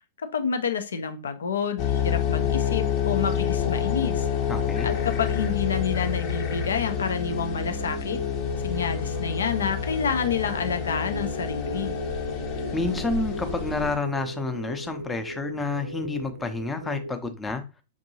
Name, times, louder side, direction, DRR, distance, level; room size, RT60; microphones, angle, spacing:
voice 1, 0.2-4.3 4.8-8.2 8.6-12.0, left 6 dB, 70° left, 0.5 m, -29 dB
sound 1, 1.8-14.0, left 9 dB, 40° left, 0.8 m, -28 dB
sound 2, 3.0-17.2, right 2 dB, 80° right, 0.3 m, -37 dB
voice 2, 4.5-4.9 12.7-17.6, left 3 dB, 10° left, 0.6 m, -29 dB
6.0 x 2.6 x 2.7 m
figure-of-eight pair, 100°, 0 cm